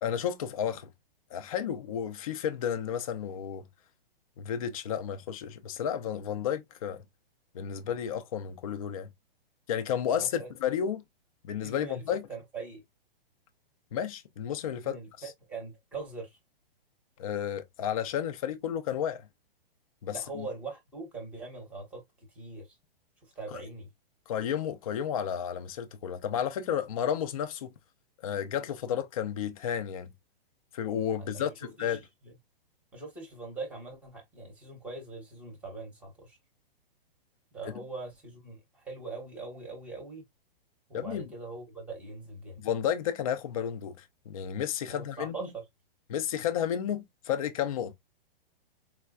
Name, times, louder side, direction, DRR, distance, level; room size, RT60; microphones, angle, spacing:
voice 1, 0.0-0.9 1.3-3.7 4.4-7.0 7.5-9.1 9.7-11.0 11.4-12.3 13.9-15.3 17.2-19.3 20.0-20.5 23.5-23.6 24.3-27.7 28.2-30.1 30.7-32.0 40.9-41.3 42.6-45.5 46.1-47.9, left 9 dB, 35° left, 0.4 m, -32 dB
voice 2, 10.1-10.5 11.6-12.8 14.8-16.4 20.1-22.0 22.3-22.7 23.2-23.9 31.2-32.0 32.9-36.4 37.5-40.2 40.9-42.7 44.9-45.6, right 3 dB, 5° right, 0.8 m, -42 dB
4.4 x 2.1 x 2.2 m
hypercardioid pair, 165°, 30 cm